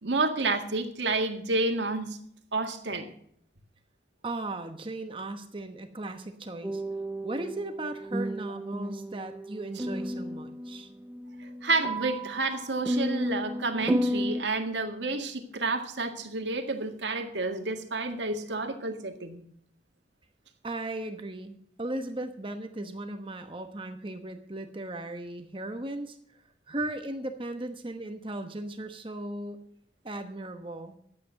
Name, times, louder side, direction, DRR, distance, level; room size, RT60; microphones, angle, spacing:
voice 1, 0.0-2.2 2.5-3.1 11.6-19.4, right 3 dB, 80° right, 5 dB, 1.8 m, -30 dB
voice 2, 4.2-6.8 7.2-10.9 20.6-26.2 26.7-29.6 30.0-31.0, right 2 dB, 30° right, 7 dB, 1.0 m, -37 dB
sound 1, 6.6-14.4, equal, 10° right, 0.5 m, -33 dB
12.5 x 8.7 x 6.3 m, 0.67 s
head